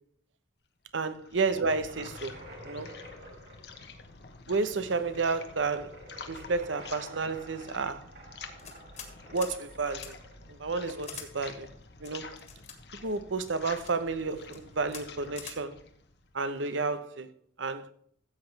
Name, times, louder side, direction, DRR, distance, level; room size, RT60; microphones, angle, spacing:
sound 1, 0.8-16.9, left 4 dB, 60° left, 1.2 m, -49 dB
voice 1, 0.9-2.3 2.6-2.9 4.5-5.9 6.3-8.1 9.3-10.2 10.5-11.7 12.0-12.4 13.0-15.7 16.3-17.3 17.6-17.9, right 4 dB, 85° right, 0.9 m, -31 dB
sound 2, 1.8-11.2, right 1 dB, 60° right, 3.7 m, -50 dB
sound 3, 8.6-9.1 9.4-9.6 10.0-10.1 11.0-11.3 12.0-12.8 13.5-13.9 14.4-14.6 14.9-15.0 15.4-15.6, left 7 dB, 40° left, 1.9 m, -43 dB
14.0 x 8.2 x 3.4 m
head